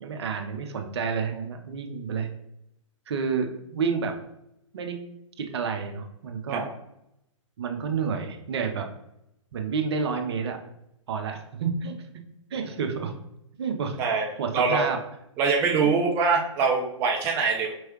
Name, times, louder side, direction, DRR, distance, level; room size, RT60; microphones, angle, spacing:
voice 1, 0.0-2.3 3.1-4.1 4.7-5.0 5.4-6.6 7.6-8.9 9.5-10.6 11.1-12.0 12.5-13.1 13.6-14.0 14.4-15.0 15.8-15.9, right 5 dB, 50° right, 4 dB, 0.7 m, -29 dB
voice 2, 14.0-14.9 15.4-17.7, right 4 dB, 15° right, 0 dB, 0.3 m, -24 dB
4.4 x 3.1 x 3.0 m, 0.81 s
figure-of-eight pair, 120°, 17 cm